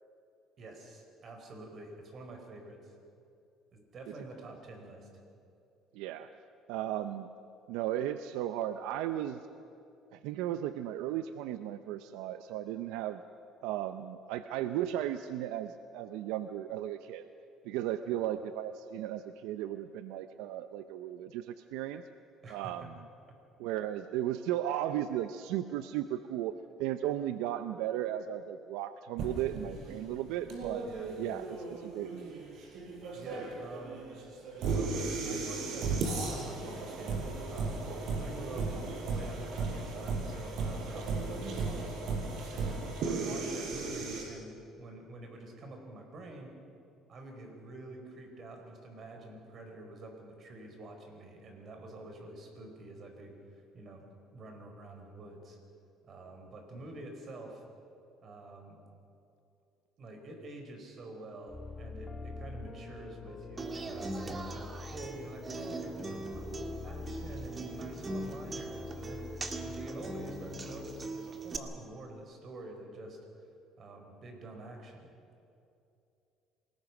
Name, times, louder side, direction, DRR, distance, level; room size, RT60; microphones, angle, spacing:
voice 1, 0.6-2.9 3.7-5.1 18.1-18.3 22.4-22.9 30.8-31.1 33.1-34.0 34.7-37.9 38.1-38.7 39.1-41.9 42.5-46.5 47.1-54.0 54.3-55.6 56.1-57.6 58.2-58.8 60.0-73.2 73.8-75.1, right 2 dB, 45° right, 4 dB, 4.7 m, -47 dB
voice 2, 5.9-6.3 6.7-7.3 7.7-9.4 10.1-13.2 13.6-17.3 17.6-22.0 22.5-23.0 23.6-26.5 26.8-30.8 31.2-32.4, right 12 dB, 85° right, 10 dB, 0.6 m, -35 dB
sound 1, 29.2-44.2, right 3 dB, 65° right, 5.2 m, -36 dB
sound 2, 61.5-71.1, left 3 dB, 20° left, 1.7 m, -45 dB
Human voice / Acoustic guitar, 63.6-71.6, right 3 dB, 25° right, 1.9 m, -41 dB
27.5 x 19.0 x 6.1 m, 2.6 s
cardioid pair, 110°, 0 cm